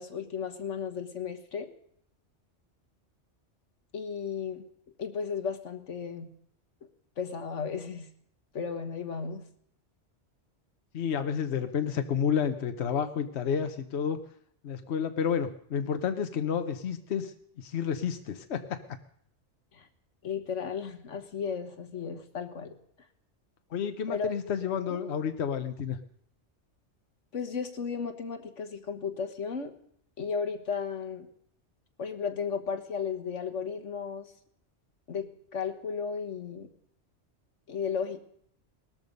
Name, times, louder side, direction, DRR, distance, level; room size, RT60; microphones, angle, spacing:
voice 1, 0.0-1.7 3.9-4.7 5.0-6.3 7.2-8.1 8.5-9.4 19.7-19.9 20.2-22.8 24.1-24.3 24.9-25.0 27.3-29.8 30.2-31.3 32.0-34.3 35.1-36.7 37.7-38.2, left 6 dB, 90° left, 7 dB, 1.8 m, -34 dB
voice 2, 10.9-14.2 14.6-18.8 23.7-26.0, left 7 dB, 65° left, 8 dB, 1.2 m, -30 dB
19.0 x 13.5 x 5.3 m, 0.66 s
omnidirectional pair, 1.2 m